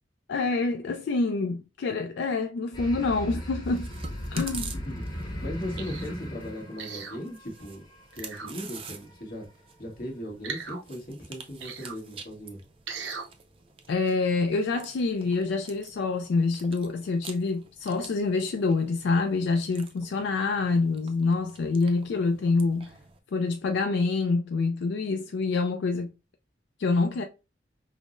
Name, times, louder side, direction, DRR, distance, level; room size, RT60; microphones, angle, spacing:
voice 1, 0.3-3.9 4.3-4.7 13.9-22.9 23.3-26.1 26.8-27.2, left 3 dB, 75° left, 0.3 m, -26 dB
sound 1, 2.7-7.7, equal, 25° left, 0.7 m, -36 dB
Chewing mastication, 3.6-23.2, right 5 dB, 30° right, 0.4 m, -48 dB
voice 2, 4.7-7.8 8.1-9.5 9.8-12.6, equal, 50° left, 1.3 m, -38 dB
sound 2, 5.8-6.1 6.8-7.2 8.1-8.5 10.4-10.8 11.6-12.0 12.9-13.3 13.9-14.0, right 5 dB, 80° right, 0.6 m, -38 dB
5.4 x 2.0 x 2.4 m
head